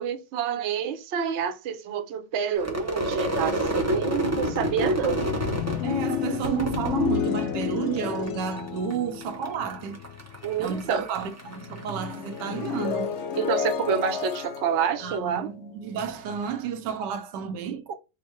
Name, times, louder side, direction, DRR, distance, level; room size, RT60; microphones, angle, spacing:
voice 1, 0.0-5.2 10.4-11.1 13.4-15.5, right 7 dB, 60° right, 0.8 m, -28 dB
Crowd / Fireworks, 2.6-8.0 8.3-8.9 9.2-12.8, right 1 dB, 15° right, 0.6 m, -30 dB
sound 1, 3.1-10.9 11.2-16.3, left 8 dB, 75° left, 0.6 m, -32 dB
voice 2, 5.8-10.0 10.6-13.1 15.0-18.0, right 7 dB, 85° right, 1.3 m, -31 dB
4.5 x 2.1 x 4.2 m
omnidirectional pair, 1.8 m